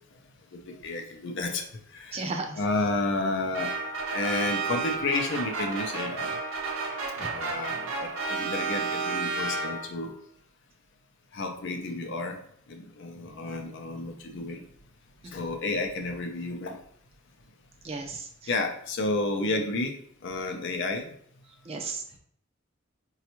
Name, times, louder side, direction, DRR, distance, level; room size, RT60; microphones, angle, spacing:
voice 1, 0.7-1.6 1.9-2.2 2.6-3.7 4.1-6.3 7.2-10.1 11.3-12.4 12.7-14.6 15.3-16.8 18.5-19.9 20.2-21.1, left 2 dB, 60° left, 4 dB, 0.5 m, -31 dB
voice 2, 2.1-2.6 7.2-7.3 15.2-15.5 17.8-18.5 21.6-22.0, right 3 dB, 30° right, 4 dB, 0.4 m, -35 dB
sound 1, 3.5-10.1, right 4 dB, 80° right, 0.7 m, -31 dB
4.1 x 2.3 x 2.9 m, 0.64 s
head